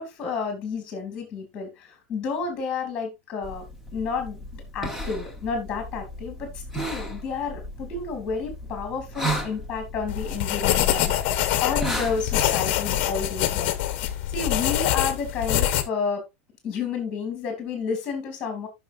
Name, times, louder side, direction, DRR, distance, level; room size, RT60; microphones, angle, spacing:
voice 1, 0.0-3.6 3.9-13.7 14.3-16.2 16.6-18.7, left 5 dB, 15° left, 2.6 m, -31 dB
sound 1, 3.4-12.5, right 1 dB, 5° right, 1.0 m, -35 dB
sound 2, 10.1-15.8, left 12 dB, 35° left, 1.1 m, -25 dB
14.5 x 5.9 x 2.6 m
supercardioid pair, 175°, 7 cm